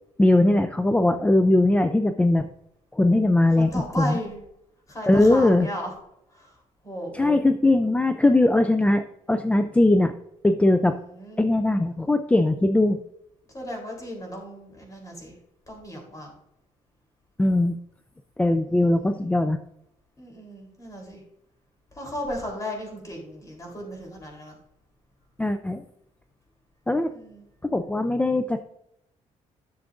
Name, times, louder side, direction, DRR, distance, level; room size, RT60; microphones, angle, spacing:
voice 1, 0.2-2.5 2.9-3.7 4.0-4.2 5.1-5.7 7.1-10.1 10.4-11.0 11.4-13.0 17.4-17.8 18.4-19.6 25.4-25.8 26.9-27.1 27.6-28.6, left 2 dB, 10° left, 8 dB, 0.4 m, -20 dB
voice 2, 3.6-4.4 4.9-5.9 6.3-6.6 6.8-7.3 10.8-11.4 13.5-15.4 15.7-16.3 18.7-19.3 20.2-21.2 21.9-24.6 27.0-27.4, equal, 25° left, 1 dB, 3.6 m, -36 dB
11.5 x 7.1 x 2.6 m, 0.79 s
cardioid pair, 110°, 13 cm